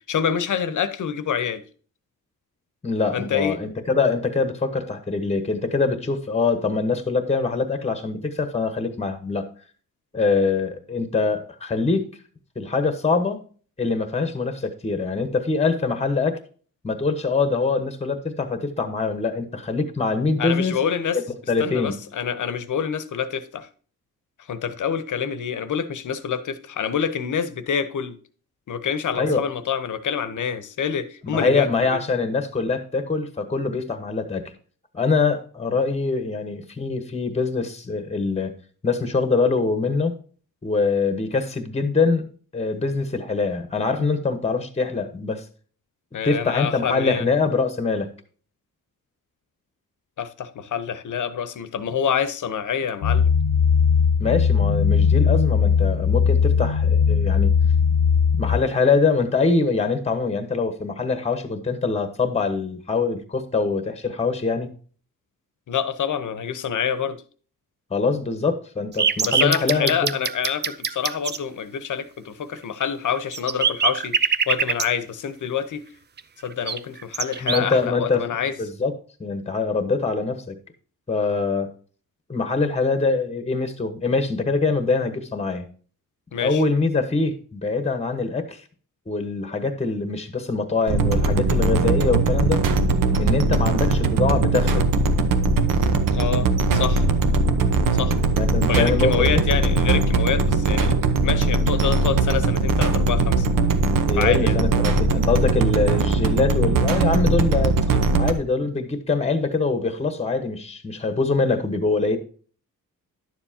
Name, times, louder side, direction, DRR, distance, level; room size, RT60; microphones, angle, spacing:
voice 1, 0.1-1.6 3.1-3.6 20.4-21.2 21.6-23.7 24.5-28.2 28.7-32.0 46.1-47.3 50.2-53.3 65.7-67.2 69.2-75.8 76.4-78.6 86.3-86.6 96.1-97.1 97.9-98.2 98.7-101.0 101.2-103.5 104.2-104.6 107.9-108.0, left 7 dB, 65° left, 1.0 m, -26 dB
voice 2, 2.8-9.5 10.1-12.2 12.5-13.4 13.8-16.4 16.8-20.9 21.5-22.0 29.2-29.4 31.3-34.5 34.9-38.6 38.8-40.1 40.6-42.3 42.5-45.4 46.2-48.1 54.2-57.6 58.4-64.7 67.9-70.1 77.4-78.2 78.6-78.9 79.2-80.6 81.1-81.7 82.3-85.7 86.4-88.6 89.1-92.6 93.2-94.9 98.4-99.4 104.1-107.8 108.2-112.2, left 4 dB, 20° left, 1.1 m, -23 dB
sound 1, 53.0-58.6, left 6 dB, 80° left, 0.6 m, -19 dB
sound 2, 69.0-71.4 72.8-72.9 73.1-74.9 76.2-76.3 76.7-77.8, right 6 dB, 30° right, 0.5 m, -23 dB
sound 3, 90.9-108.3, right 3 dB, 75° right, 1.0 m, -20 dB
11.0 x 7.2 x 2.8 m
wide cardioid pair, 120°, 33 cm